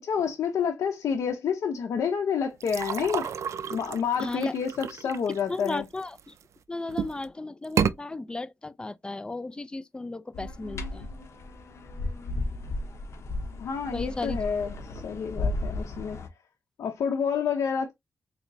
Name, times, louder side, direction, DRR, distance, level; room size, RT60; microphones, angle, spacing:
voice 1, 0.0-3.3 3.7-5.9 13.6-16.2 16.8-17.9, left 7 dB, 85° left, 0.6 m, -29 dB
sound 1, 2.6-6.4 6.9-7.3 7.6-8.0, right 7 dB, 70° right, 0.3 m, -31 dB
voice 2, 4.2-4.5 5.5-6.3 6.7-11.1 13.9-14.4, left 2 dB, 15° left, 0.4 m, -35 dB
sound 2, 10.3-16.3, left 2 dB, 65° left, 0.9 m, -34 dB
4.2 x 3.0 x 2.6 m
cardioid pair, 90°, 5 cm